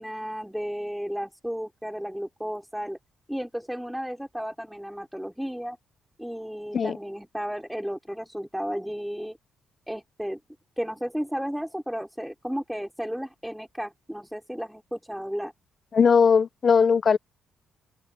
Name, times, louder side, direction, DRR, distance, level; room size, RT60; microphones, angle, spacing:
voice 1, 0.0-3.0 3.3-5.8 6.2-9.4 9.9-10.4 10.8-15.5, equal, ahead, 4.1 m, -33 dB
voice 2, 15.9-17.2, left 6 dB, 45° left, 0.8 m, -19 dB
open air
cardioid pair, 90°, 0 cm